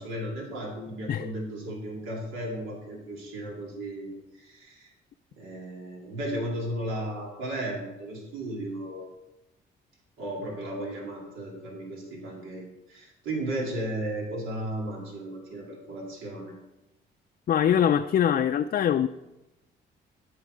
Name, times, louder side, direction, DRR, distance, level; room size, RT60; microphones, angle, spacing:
voice 1, 0.0-4.1 4.4-4.9 5.4-9.1 10.2-16.5, right 1 dB, 85° right, -2 dB, 2.7 m, -35 dB
voice 2, 17.5-19.1, left 9 dB, 45° left, 8 dB, 0.4 m, -23 dB
13.0 x 4.6 x 5.1 m, 0.95 s
cardioid pair, 90°, 20 cm